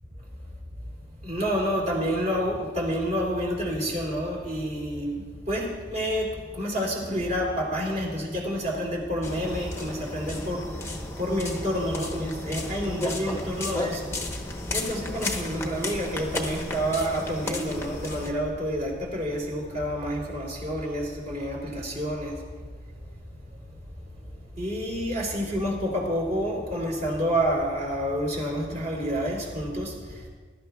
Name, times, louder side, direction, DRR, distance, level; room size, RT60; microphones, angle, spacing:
voice 1, 1.2-14.1 14.7-22.3 24.6-30.3, equal, 40° right, -2 dB, 3.3 m, -29 dB
sound 1, 9.2-18.3, left 2 dB, 15° left, 0.9 m, -33 dB
21.0 x 12.0 x 2.3 m, 1.5 s
head